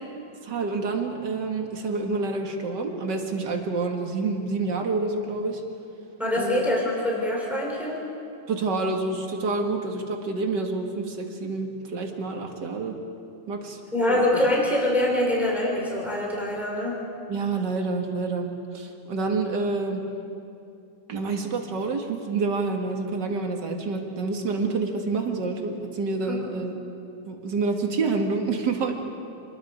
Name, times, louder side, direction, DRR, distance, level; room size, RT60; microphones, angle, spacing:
voice 1, 0.4-5.6 6.3-6.6 8.5-12.9 13.5-13.8 14.1-14.2 17.3-20.0 21.1-26.7 27.3-29.0, right 3 dB, 60° right, 3 dB, 2.4 m, -28 dB
voice 2, 6.2-8.0 13.9-17.0 26.3-26.4, left 1 dB, ahead, -3 dB, 3.8 m, -24 dB
26.5 x 21.0 x 5.0 m, 2.6 s
omnidirectional pair, 2.1 m